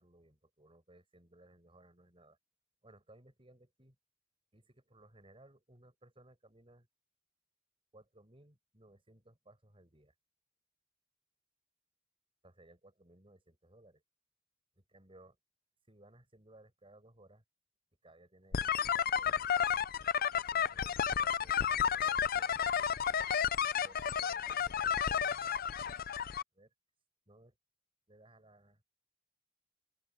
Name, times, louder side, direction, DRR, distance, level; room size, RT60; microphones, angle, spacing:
voice 1, 0.0-2.4 2.8-3.9 4.5-6.9 7.9-10.1 12.4-14.0 14.8-15.4 15.9-17.4 18.0-19.5 20.5-22.7 23.8-25.5 26.5-26.7 27.3-27.6 28.1-28.8, right 1 dB, 25° right, 5.2 m, -62 dB
sound 1, 18.5-26.4, left 8 dB, 45° left, 0.5 m, -32 dB
open air
head